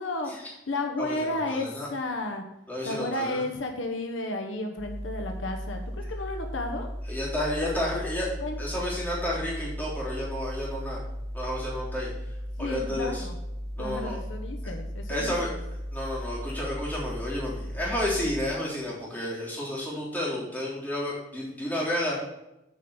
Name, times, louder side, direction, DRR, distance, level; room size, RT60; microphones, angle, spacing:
voice 1, 0.0-2.4 2.8-6.9 7.6-8.1 8.4-8.9 12.6-13.4 13.8-15.3, left 2 dB, 75° left, 3 dB, 1.0 m, -33 dB
voice 2, 1.0-1.9 2.7-3.4 7.1-8.3 8.6-11.0 11.3-12.1 12.6-13.3 13.8-14.2 15.1-15.5 15.9-22.2, left 1 dB, 10° left, -6 dB, 3.3 m, -31 dB
sound 1, 4.8-18.5, equal, 60° right, 3.0 m, -36 dB
8.2 x 5.2 x 7.0 m, 0.89 s
head